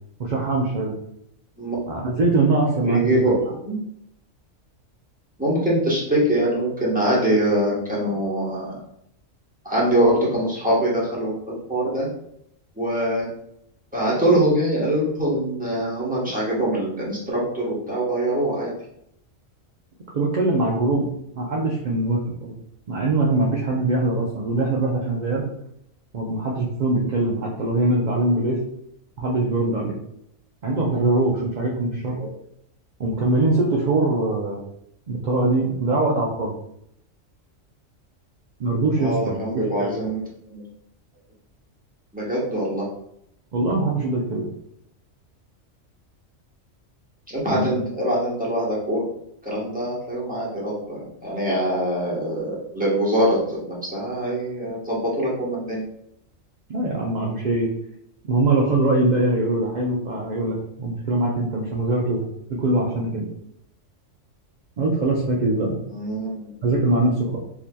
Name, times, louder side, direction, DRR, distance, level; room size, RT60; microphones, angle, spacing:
voice 1, 0.2-0.9 1.9-3.2 20.1-21.1 21.4-22.5 22.9-25.5 26.1-28.6 29.2-30.0 30.6-32.2 33.0-34.6 35.1-36.5 38.6-39.4 39.8-40.0 43.5-44.5 47.5-47.8 56.7-57.7 58.3-63.3 64.8-65.8 66.6-67.4, right 2 dB, 55° right, -3 dB, 0.5 m, -22 dB
voice 2, 2.8-3.8 5.4-8.8 9.6-12.1 12.8-13.3 13.9-18.7 32.2-32.3 39.0-40.2 40.5-40.6 42.1-42.9 47.3-49.0 49.4-55.8 65.9-66.5, right 1 dB, 5° right, -6 dB, 1.0 m, -23 dB
4.7 x 2.8 x 2.2 m, 0.75 s
omnidirectional pair, 1.4 m